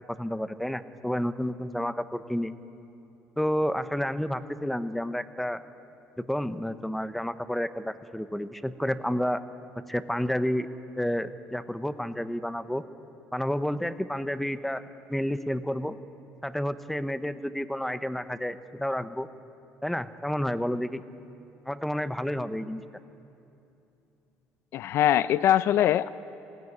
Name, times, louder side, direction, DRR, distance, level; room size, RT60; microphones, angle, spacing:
voice 1, 0.2-2.5 3.4-5.6 6.2-9.4 9.9-10.7 11.0-12.8 13.3-14.8 15.1-16.0 16.4-19.3 19.8-21.0 21.7-22.8, equal, 5° left, 12 dB, 0.7 m, -30 dB
voice 2, 24.7-26.1, left 11 dB, 55° left, 15 dB, 0.4 m, -22 dB
20.0 x 16.0 x 9.6 m, 2.8 s
cardioid pair, 145°, 5 cm